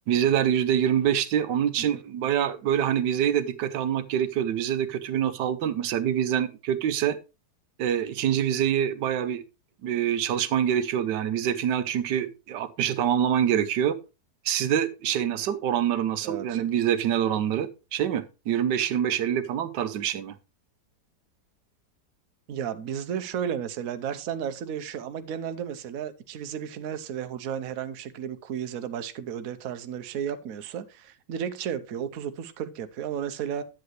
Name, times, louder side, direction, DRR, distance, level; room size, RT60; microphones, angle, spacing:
voice 1, 0.1-7.2 7.8-9.4 9.8-14.0 14.4-20.3, right 9 dB, 85° right, 1.4 m, -25 dB
voice 2, 16.2-16.6 22.5-33.6, right 8 dB, 60° right, 1.2 m, -33 dB
10.5 x 7.9 x 3.1 m
omnidirectional pair, 1.8 m